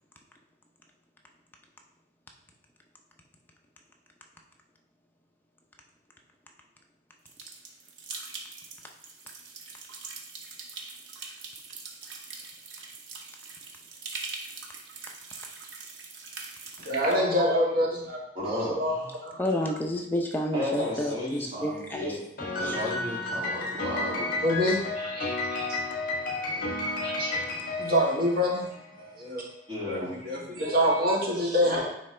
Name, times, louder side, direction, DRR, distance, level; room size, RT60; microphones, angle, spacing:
sound 1, 7.3-17.2, right 4 dB, 90° right, 0.9 m, -42 dB
voice 1, 16.8-18.2 18.7-18.9 19.2-19.4 24.4-25.8 26.8-28.7 28.9-29.4 29.9-31.9, equal, 55° right, -4 dB, 1.7 m, -27 dB
voice 2, 18.3-19.1 20.5-22.2 22.5-24.4 26.5-26.7 29.7-30.2, left 1 dB, 30° right, -7 dB, 2.3 m, -33 dB
voice 3, 19.4-22.1 22.6-22.8, left 1 dB, 10° left, 1 dB, 0.6 m, -30 dB
Piano, 22.4-28.9, left 2 dB, 50° left, 1.5 m, -32 dB
9.0 x 3.4 x 3.3 m, 0.80 s
head